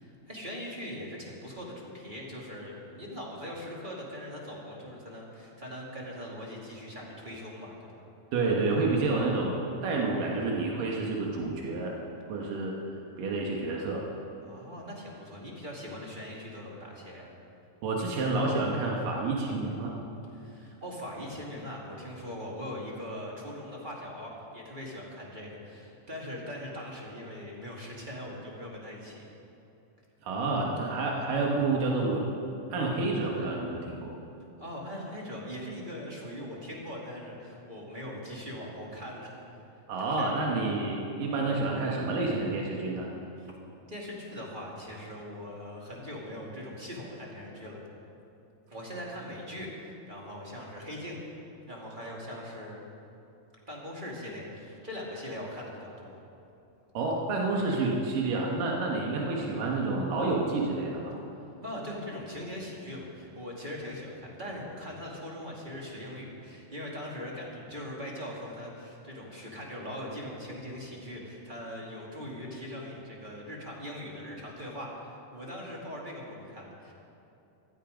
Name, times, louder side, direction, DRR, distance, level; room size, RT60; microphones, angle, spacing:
voice 1, 0.0-8.0 14.4-17.3 20.3-29.3 34.6-39.6 40.0-40.3 43.4-43.6 43.9-47.8 48.7-51.2 51.7-52.8 53.7-56.2 61.6-76.9, left 1 dB, 15° right, -3 dB, 1.9 m, -41 dB
voice 2, 8.3-9.6 9.8-11.9 12.3-12.7 13.2-14.0 17.8-19.9 30.2-32.2 32.7-34.1 39.9-43.1 56.9-61.1, right 3 dB, 90° right, -2 dB, 3.1 m, -29 dB
15.5 x 14.0 x 5.2 m, 2.9 s
omnidirectional pair, 3.7 m